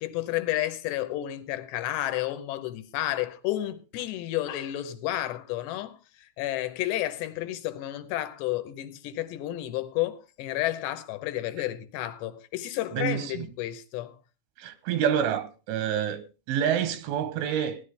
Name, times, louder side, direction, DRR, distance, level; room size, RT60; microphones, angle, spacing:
voice 1, 0.0-14.2, left 14 dB, 75° left, 2.8 m, -31 dB
voice 2, 12.9-13.5 14.6-17.8, right 9 dB, 85° right, 3.3 m, -28 dB
16.5 x 11.5 x 3.3 m
omnidirectional pair, 5.5 m